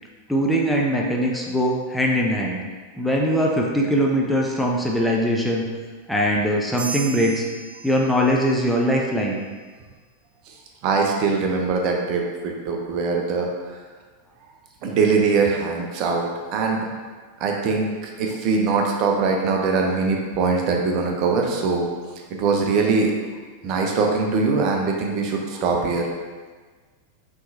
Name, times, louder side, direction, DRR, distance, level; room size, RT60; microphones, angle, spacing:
voice 1, 0.3-2.6 3.0-5.7 6.1-7.4 7.8-9.4 17.4-17.5, equal, ahead, -2 dB, 0.5 m, -21 dB
sound 1, 6.8-8.6, right 5 dB, 60° right, 1.1 m, -35 dB
voice 2, 10.8-13.5 14.8-16.9 17.4-21.9 22.3-23.3 23.6-26.1, right 4 dB, 40° right, 1 dB, 0.6 m, -22 dB
5.7 x 3.1 x 2.6 m, 1.4 s
figure-of-eight pair, 90°, 0 cm